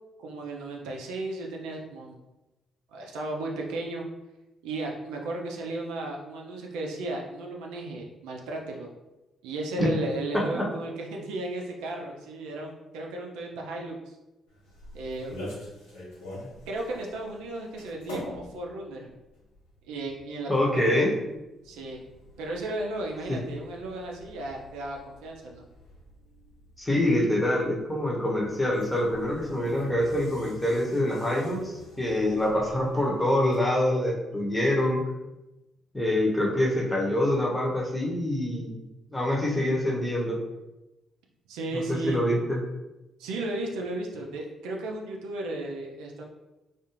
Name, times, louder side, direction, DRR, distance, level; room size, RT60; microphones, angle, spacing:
voice 1, 0.2-2.2 2.9-4.0 4.6-8.9 9.4-14.2 14.9-15.4 16.7-19.1 19.9-21.1 21.6-22.0 22.4-25.6 41.5-42.2 43.2-46.2, right 2 dB, 70° right, -1 dB, 0.4 m, -34 dB
sound 1, 14.5-33.6, left 1 dB, 80° left, 0.9 m, -47 dB
voice 2, 20.5-21.1 23.3-23.4 26.8-35.0 35.9-38.8 39.1-40.4 41.7-41.8 42.1-42.6, left 1 dB, 10° left, -2 dB, 0.9 m, -25 dB
2.4 x 2.3 x 3.0 m, 1.0 s
figure-of-eight pair, 40°, 0 cm